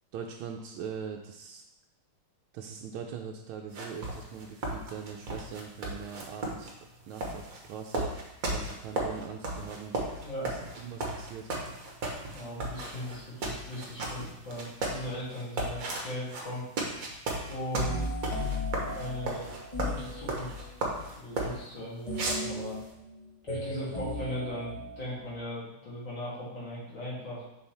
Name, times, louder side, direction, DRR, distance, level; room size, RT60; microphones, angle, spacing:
voice 1, 0.1-1.6 2.5-6.7 7.1-8.1 8.5-11.5, right 7 dB, 80° right, 1 dB, 1.4 m, -41 dB
sound 1, 3.7-21.6 22.1-22.9, right 2 dB, 50° right, 1.4 m, -35 dB
voice 2, 10.2-10.5 12.3-16.6 17.5-18.1 18.9-20.7 21.2-22.8 23.4-27.4, left 1 dB, 60° left, -8 dB, 3.3 m, -38 dB
sound 2, 17.9-20.8 22.1-25.4, left 1 dB, 20° left, 1.1 m, -36 dB
7.0 x 5.6 x 3.4 m, 0.87 s
omnidirectional pair, 2.3 m